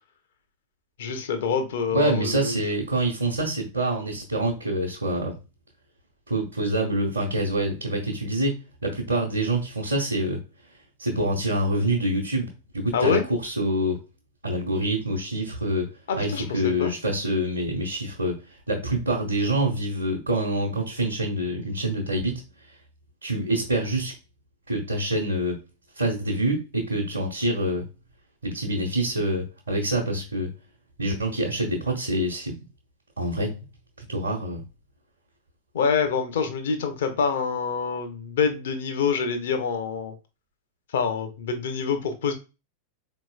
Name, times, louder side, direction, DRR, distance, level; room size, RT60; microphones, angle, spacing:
voice 1, 1.0-2.6 12.9-13.2 16.1-16.9 35.7-40.1 40.9-42.3, left 5 dB, 60° left, 0.7 m, -26 dB
voice 2, 1.9-5.3 6.3-10.4 11.0-12.5 12.7-14.0 14.4-15.9 16.2-18.4 18.7-22.4 23.2-24.1 24.7-25.6 26.0-27.8 28.4-30.5 31.0-32.6 33.2-33.6 34.0-34.6, right 1 dB, 80° right, 0.9 m, -26 dB
4.3 x 3.0 x 2.3 m
figure-of-eight pair, 90°, 0 cm